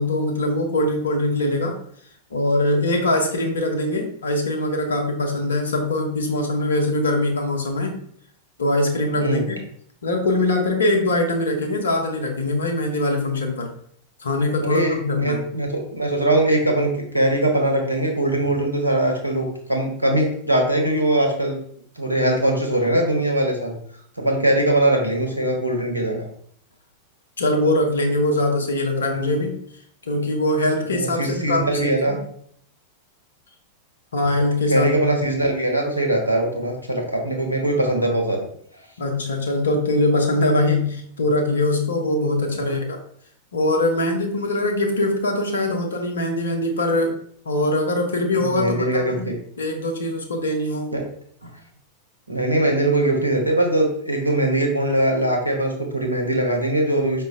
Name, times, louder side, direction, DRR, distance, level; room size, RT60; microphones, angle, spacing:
voice 1, 0.0-1.8 2.3-8.0 8.6-9.7 10.0-13.7 14.2-15.4 27.4-29.6 30.1-32.2 34.1-34.9 39.0-43.0 43.5-47.2 47.5-50.9, left 1 dB, 70° left, 3 dB, 0.6 m, -22 dB
voice 2, 9.1-9.5 14.6-21.6 22.0-23.8 24.2-26.3 29.1-29.4 30.2-30.3 30.9-32.2 34.7-38.5 42.5-42.8 48.4-49.4 50.9-51.0 51.4-51.5 52.3-57.2, right 1 dB, 90° right, 1 dB, 0.7 m, -21 dB
4.9 x 2.1 x 2.5 m, 0.64 s
figure-of-eight pair, 90°, 0 cm